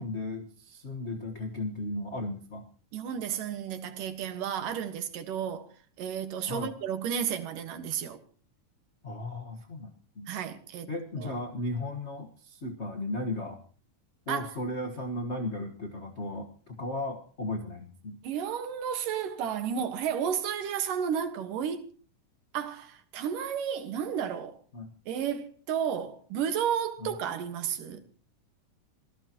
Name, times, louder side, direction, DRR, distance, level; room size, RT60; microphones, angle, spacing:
voice 1, 0.0-2.6 6.4-6.7 9.0-10.3 10.9-13.6 14.3-18.2 24.7-24.9 27.0-27.1, left 2 dB, 55° left, 0.7 m, -35 dB
voice 2, 2.9-5.7 6.0-8.2 10.3-11.4 14.3-14.5 18.2-21.9 22.5-24.6 25.1-28.1, right 8 dB, 80° right, 3.1 m, -32 dB
26.5 x 16.5 x 3.0 m
omnidirectional pair, 3.7 m